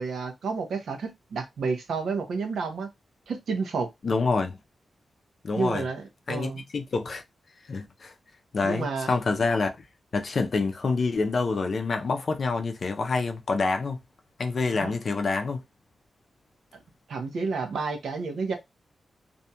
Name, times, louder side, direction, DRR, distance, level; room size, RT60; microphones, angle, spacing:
voice 1, 0.0-2.9 3.3-3.9 5.6-6.6 8.6-9.1 14.7-14.9 17.1-18.6, right 4 dB, 85° right, 0.8 m, -30 dB
voice 2, 4.0-4.6 5.4-5.8 6.3-7.2 7.7-8.1 8.5-9.7 10.1-14.0 14.4-15.6, left 4 dB, 45° left, 0.5 m, -27 dB
2.6 x 2.3 x 2.7 m
wide cardioid pair, 155°, 0 cm